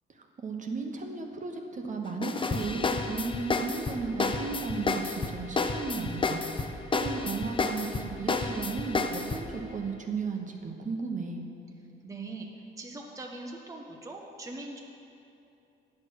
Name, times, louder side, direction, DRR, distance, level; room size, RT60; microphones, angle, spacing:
voice 1, 0.1-6.4 6.9-11.4, right 4 dB, 40° right, 3 dB, 1.1 m, -35 dB
sound 1, 2.2-9.5, left 3 dB, 25° left, 0.6 m, -31 dB
voice 2, 12.0-12.5 12.8-14.8, right 2 dB, 15° right, 0 dB, 0.9 m, -41 dB
9.7 x 6.6 x 6.3 m, 2.7 s
cardioid pair, 90°, 20 cm